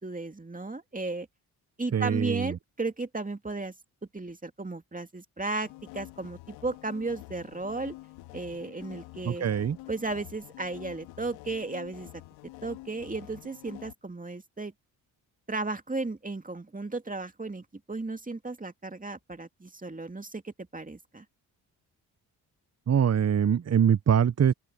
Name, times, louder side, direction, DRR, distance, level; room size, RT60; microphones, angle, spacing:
voice 1, 0.0-1.3 1.8-3.7 4.1-7.9 8.3-9.5 9.9-12.1 12.6-14.7 15.5-21.2, right 3 dB, 20° right, 2.5 m, -35 dB
voice 2, 1.9-2.6 9.2-9.8 22.9-24.5, right 8 dB, 35° right, 0.9 m, -23 dB
sound 1, 5.6-13.9, left 18 dB, 90° left, 2.2 m, -47 dB
open air
hypercardioid pair, 45°, 44 cm